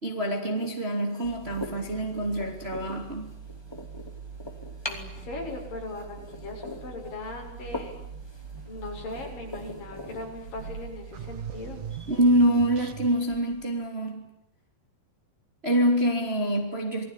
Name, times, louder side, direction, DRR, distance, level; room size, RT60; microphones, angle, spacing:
voice 1, 0.0-3.3 12.1-14.3 15.6-17.1, right 1 dB, 15° right, 3 dB, 3.0 m, -25 dB
sound 1, 0.5-12.4, left 1 dB, 10° left, 2.0 m, -43 dB
sound 2, 1.2-13.9, right 6 dB, 35° right, 3.2 m, -44 dB
voice 2, 4.9-8.0 8.6-11.8, left 2 dB, 60° left, 1 dB, 8.5 m, -39 dB
sound 3, 11.1-13.5, right 8 dB, 60° right, 2.2 m, -40 dB
28.5 x 20.5 x 10.0 m, 0.76 s
omnidirectional pair, 4.6 m